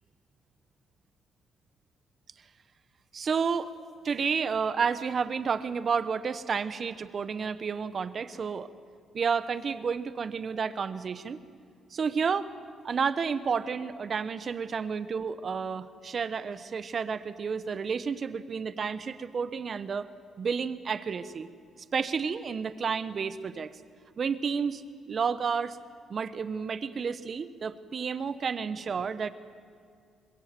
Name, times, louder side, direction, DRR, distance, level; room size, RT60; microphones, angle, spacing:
voice 1, 3.1-3.7 4.0-8.7 9.1-11.4 11.9-12.5 12.8-20.1 20.4-21.5 21.9-23.7 24.2-24.8 25.1-25.8 26.1-29.3, right 6 dB, 45° right, 14 dB, 1.1 m, -31 dB
25.5 x 21.5 x 7.7 m, 2.3 s
cardioid pair, 90°, 0 cm